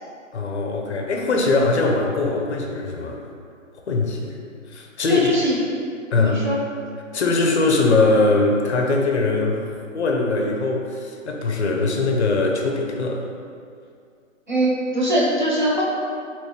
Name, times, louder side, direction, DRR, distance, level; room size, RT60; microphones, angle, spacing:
voice 1, 0.3-3.2 3.9-4.4 4.7-5.3 6.1-6.5 7.1-9.7 9.9-13.2, left 3 dB, 60° left, 1 dB, 0.5 m, -21 dB
voice 2, 5.1-5.6 6.1-6.6 14.5-15.8, equal, 35° right, -6 dB, 0.5 m, -21 dB
3.1 x 3.1 x 2.9 m, 2.3 s
hypercardioid pair, 175°, 39 cm